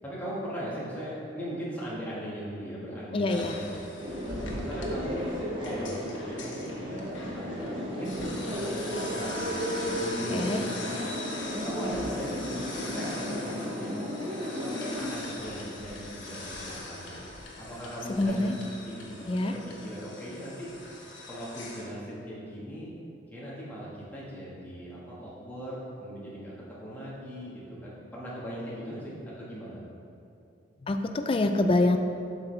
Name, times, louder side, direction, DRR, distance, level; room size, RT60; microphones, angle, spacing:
voice 1, 0.0-3.9 4.5-5.3 5.6-11.0 11.6-14.1 14.4-17.1 17.6-18.5 18.8-20.7 21.3-22.9 23.3-26.5 26.8-29.8, equal, 10° left, -8 dB, 1.5 m, -39 dB
voice 2, 3.1-3.5 10.3-10.6 18.1-18.6 19.3-19.6 30.8-32.0, left 2 dB, 30° left, 7 dB, 0.3 m, -25 dB
sound 1, 3.3-21.8, left 2 dB, 70° left, 1.1 m, -41 dB
sound 2, 4.0-15.1, equal, 30° right, 0.9 m, -34 dB
7.5 x 6.0 x 3.3 m, 2.7 s
head